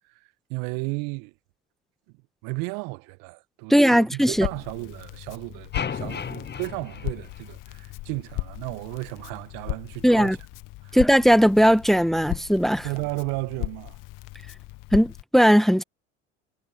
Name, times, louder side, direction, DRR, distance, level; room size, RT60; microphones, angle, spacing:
voice 1, 0.5-1.3 2.4-10.4 10.8-11.0 12.8-14.0, right 29 dB, 65° right, 1.9 m, -33 dB
voice 2, 3.7-4.5 10.0-10.4 10.9-12.9 14.9-15.8, equal, ahead, 1.7 m, -18 dB
Crackle, 4.3-15.2, left 21 dB, 55° left, 1.7 m, -37 dB
sound 1, 5.7-8.0, left 7 dB, 25° left, 1.7 m, -34 dB
hypercardioid pair, 65°, 37 cm